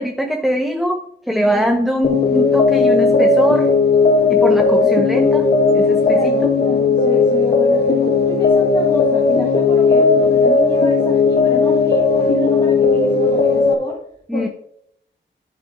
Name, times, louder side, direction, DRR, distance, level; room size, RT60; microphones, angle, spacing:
voice 1, 0.0-3.7 4.3-6.4 14.3-14.5, equal, ahead, 5 dB, 0.7 m, -21 dB
voice 2, 1.4-1.9 4.8-4.9 6.1-14.0 14.3-14.5, left 1 dB, 25° left, -2 dB, 1.7 m, -29 dB
sound 1, 2.0-13.7, left 4 dB, 55° left, 1.0 m, -15 dB
10.0 x 8.5 x 2.6 m, 0.71 s
wide cardioid pair, 110°, 20 cm